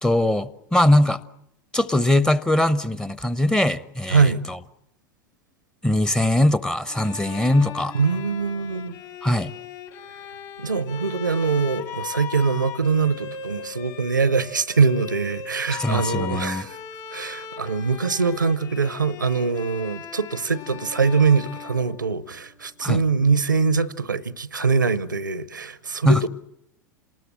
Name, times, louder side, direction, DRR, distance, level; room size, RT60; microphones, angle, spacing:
voice 1, 0.0-1.2 1.7-4.6 5.8-7.9 9.2-9.5 15.7-16.7 22.8-23.0 26.0-26.3, left 1 dB, 5° left, 0.9 m, -21 dB
voice 2, 4.1-4.4 7.9-8.9 10.6-16.8 17.1-26.3, right 5 dB, 85° right, 0.9 m, -23 dB
Bowed string instrument, 6.9-22.6, left 7 dB, 45° left, 3.3 m, -38 dB
27.5 x 19.5 x 8.7 m
figure-of-eight pair, 85°, 10 cm